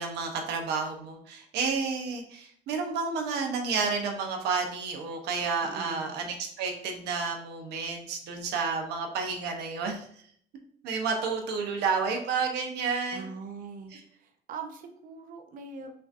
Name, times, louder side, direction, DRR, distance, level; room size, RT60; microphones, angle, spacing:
voice 1, 0.0-10.1 10.8-13.3 13.9-14.0, right 5 dB, 80° right, 3 dB, 0.9 m, -31 dB
voice 2, 5.6-6.1 13.1-13.9 14.2-15.9, right 5 dB, 55° right, 5 dB, 0.7 m, -42 dB
5.6 x 2.7 x 2.6 m, 0.63 s
cardioid pair, 110°, 17 cm